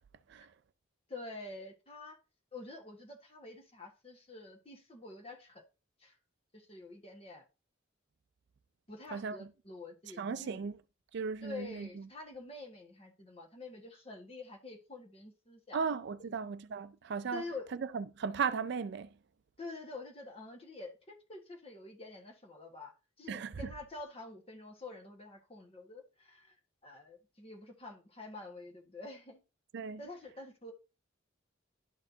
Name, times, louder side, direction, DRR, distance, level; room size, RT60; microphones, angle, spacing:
voice 1, 1.1-2.2 2.5-5.6 6.0-6.2 6.5-7.4 8.9-10.6 11.4-15.8 16.2-16.3 17.3-17.7 19.6-26.6 26.8-29.4 30.0-30.7, left 3 dB, 30° left, 1.4 m, -47 dB
voice 2, 9.1-9.5 10.2-10.7 11.1-12.1 15.7-17.4 17.7-19.1 23.3-23.5 29.7-30.0, right 5 dB, 60° right, 0.4 m, -36 dB
11.5 x 4.3 x 2.7 m
head